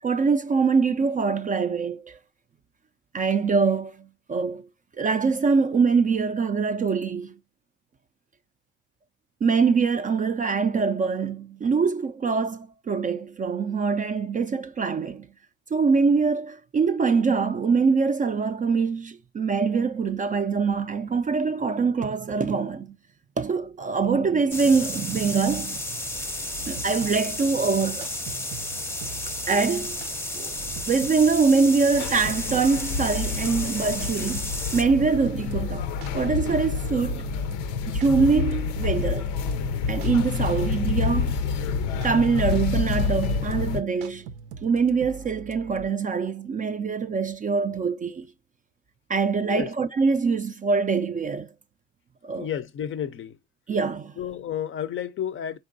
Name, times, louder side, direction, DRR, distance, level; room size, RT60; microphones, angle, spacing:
voice 1, 0.0-2.2 3.1-4.7 5.0-7.3 9.4-15.3 15.7-23.0 23.4-25.8 26.7-28.1 29.5-30.0 30.3-30.5 30.9-35.9 36.1-37.2 37.9-39.3 39.9-41.3 42.0-44.3 44.6-48.3 49.1-51.5 52.2-52.5 53.7-54.1, right 5 dB, 25° right, 0.3 m, -24 dB
sound 1, 24.5-34.8, left 1 dB, 10° left, 0.7 m, -33 dB
sound 2, 26.1-45.9, right 6 dB, 80° right, 0.6 m, -43 dB
sound 3, 31.9-43.8, left 5 dB, 85° left, 0.6 m, -28 dB
voice 2, 52.4-53.4 54.2-55.6, left 9 dB, 40° left, 0.5 m, -31 dB
4.4 x 3.8 x 2.5 m
supercardioid pair, 90°, 32 cm